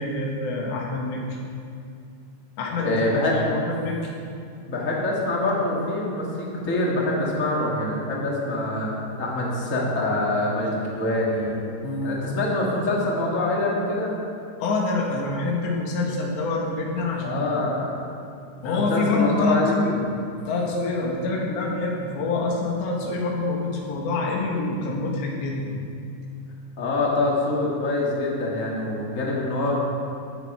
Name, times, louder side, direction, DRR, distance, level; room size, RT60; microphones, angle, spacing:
voice 1, 0.0-1.4 2.6-4.1 11.8-12.2 14.6-17.6 18.6-20.0 20.5-25.7, left 3 dB, 75° left, -1 dB, 3.9 m, -26 dB
voice 2, 2.8-3.3 4.7-8.9 9.2-11.7 12.0-14.1 17.2-17.9 18.6-19.7 26.8-29.8, left 2 dB, 45° left, -3 dB, 1.0 m, -25 dB
15.5 x 10.0 x 5.0 m, 2.5 s
omnidirectional pair, 5.2 m